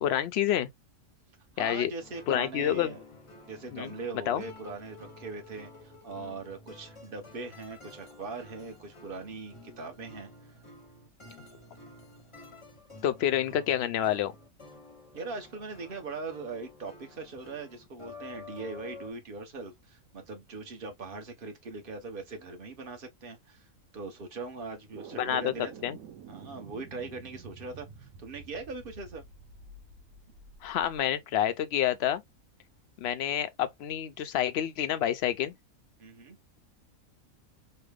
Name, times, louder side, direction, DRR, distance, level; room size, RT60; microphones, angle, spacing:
voice 1, 0.0-0.7 1.6-1.9 2.3-2.9 3.7-3.9 4.3-4.4 13.0-14.3 25.1-25.5 25.8-26.0 30.6-32.2 33.0-35.5, left 10 dB, 65° left, 0.7 m, -28 dB
voice 2, 1.5-3.0 3.5-10.3 15.1-25.7 26.3-29.2 36.0-36.4, right 3 dB, 45° right, 1.1 m, -41 dB
sound 1, 2.0-19.1, left 2 dB, 30° left, 0.7 m, -51 dB
sound 2, 24.9-31.0, right 5 dB, 80° right, 1.1 m, -49 dB
3.3 x 2.1 x 3.3 m
omnidirectional pair, 1.4 m